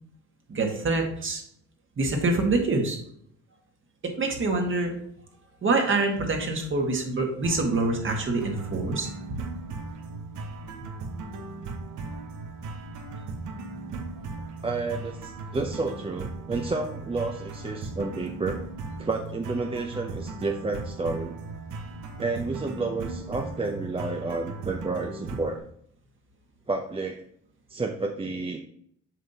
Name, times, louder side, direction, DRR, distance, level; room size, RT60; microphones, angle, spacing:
voice 1, 0.5-1.4 2.0-3.0 4.0-4.9 5.6-9.1, right 3 dB, 40° right, 2 dB, 1.7 m, -25 dB
sound 1, 7.4-25.6, right 3 dB, 80° right, 1.1 m, -37 dB
voice 2, 14.6-18.6 19.0-21.4 22.2-25.6 26.7-27.2 27.7-28.6, right 3 dB, 20° right, 3 dB, 0.6 m, -30 dB
7.4 x 5.3 x 2.8 m, 0.67 s
cardioid pair, 90°, 30 cm